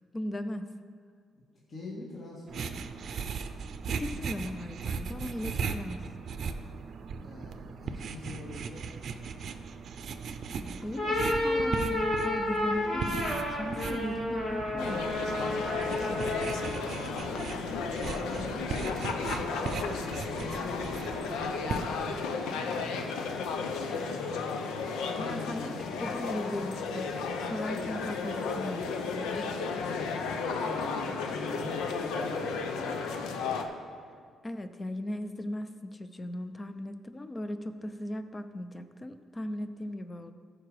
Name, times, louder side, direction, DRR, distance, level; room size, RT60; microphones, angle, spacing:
voice 1, 0.1-0.7 3.9-6.0 10.8-15.1 25.2-25.8 26.0-29.5 34.4-40.3, left 1 dB, 25° left, 10 dB, 0.6 m, -38 dB
voice 2, 1.3-2.9 7.2-8.9 10.7-10.9 11.3-11.6 15.9-17.1 17.8-19.6 20.3-23.1 23.7-24.1 25.0-25.8 29.8-30.2 30.7-33.2, left 2 dB, 40° left, -5 dB, 1.9 m, -45 dB
sound 1, 2.5-22.2, right 5 dB, 60° right, 0.6 m, -38 dB
sound 2, 10.8-16.8, left 1 dB, 70° left, 2.4 m, -31 dB
sound 3, 14.8-33.6, left 4 dB, 90° left, 0.7 m, -33 dB
14.0 x 5.0 x 4.9 m, 2.1 s
cardioid pair, 90°, 0 cm